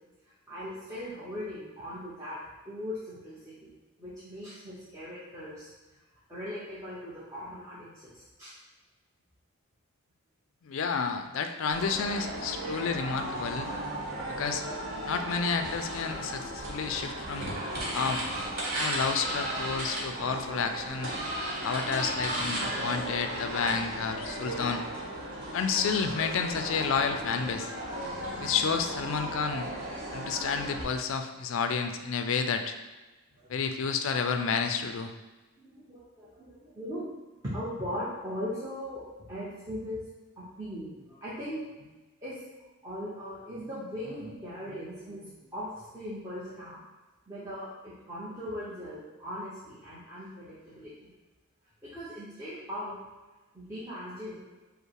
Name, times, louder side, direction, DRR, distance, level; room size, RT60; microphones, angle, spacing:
voice 1, 0.5-2.4 2.6-3.7 4.0-5.7 6.3-8.5 33.4-33.6 35.6-37.1 37.4-40.0 40.4-41.6 42.2-42.4 42.8-46.8 47.3-51.1 51.8-53.0 53.5-54.4, equal, 15° right, -11 dB, 0.9 m, -39 dB
voice 2, 10.6-13.7 14.3-14.6 15.0-17.5 17.9-18.3 18.8-21.1 21.6-24.8 25.5-27.7 28.4-29.7 30.1-32.7 33.5-35.1, left 5 dB, 60° left, 7 dB, 0.4 m, -30 dB
sound 1, 11.7-30.8, right 1 dB, 45° right, 1.4 m, -35 dB
5.4 x 2.1 x 4.6 m, 1.2 s
head